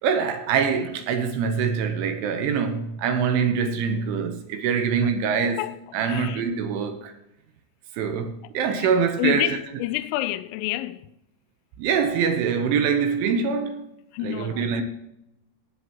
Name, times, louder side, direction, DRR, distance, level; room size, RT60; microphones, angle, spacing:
voice 1, 0.0-5.6 5.9-7.1 7.9-9.6 11.8-13.9 14.2-14.8, right 6 dB, 75° right, 3.2 m, -24 dB
voice 2, 6.0-6.4 9.2-11.1 14.1-14.8, left 16 dB, 85° left, 3.0 m, -28 dB
18.5 x 7.7 x 3.0 m
omnidirectional pair, 5.9 m